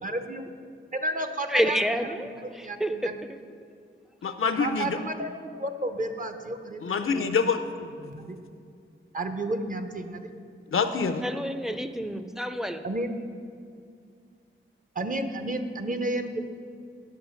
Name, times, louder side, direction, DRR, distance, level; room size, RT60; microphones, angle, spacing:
voice 1, 0.0-0.5 0.9-1.8 2.2-3.1 4.6-6.8 7.1-7.5 8.0-8.4 9.1-10.3 12.8-13.1 14.9-16.4, right 1 dB, 40° right, 7 dB, 0.8 m, -32 dB
voice 2, 1.5-3.1 11.2-12.8, equal, ahead, 8 dB, 0.5 m, -28 dB
voice 3, 4.2-5.0 6.8-7.6 10.7-11.2, left 5 dB, 85° left, 9 dB, 0.6 m, -26 dB
10.5 x 5.7 x 6.3 m, 2.3 s
wide cardioid pair, 95°, 21 cm